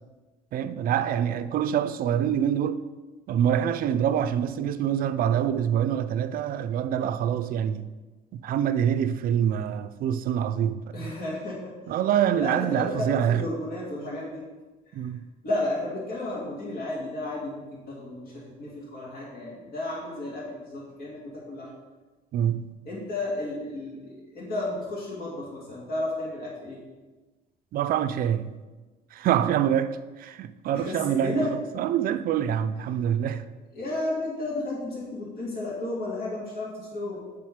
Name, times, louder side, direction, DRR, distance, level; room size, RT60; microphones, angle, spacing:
voice 1, 0.5-2.9 3.3-7.9 8.3-10.8 11.9-13.4 14.9-15.2 22.3-22.7 27.7-28.6 29.1-31.5 31.8-33.5, right 9 dB, 60° right, 0.4 m, -25 dB
voice 2, 10.9-11.9 12.3-14.4 14.9-15.2 15.4-21.7 22.9-26.8 30.7-31.5 33.7-37.2, left 2 dB, 65° left, 2.1 m, -33 dB
7.8 x 3.6 x 5.1 m
cardioid pair, 110°, 17 cm